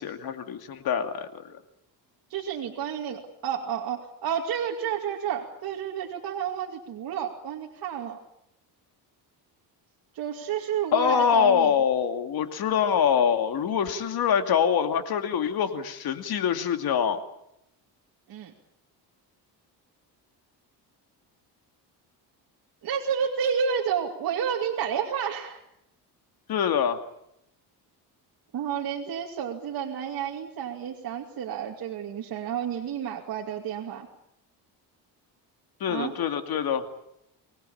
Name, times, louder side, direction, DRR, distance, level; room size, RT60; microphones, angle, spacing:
voice 1, 0.0-1.6 10.9-17.2 26.5-27.0 35.8-36.8, left 7 dB, 60° left, 7 dB, 2.6 m, -25 dB
voice 2, 2.3-8.2 10.1-11.7 18.3-18.5 22.8-25.6 28.5-34.1 35.9-36.1, right 8 dB, 60° right, 0 dB, 2.6 m, -30 dB
25.5 x 20.0 x 8.7 m, 0.80 s
cardioid pair, 145°, 41 cm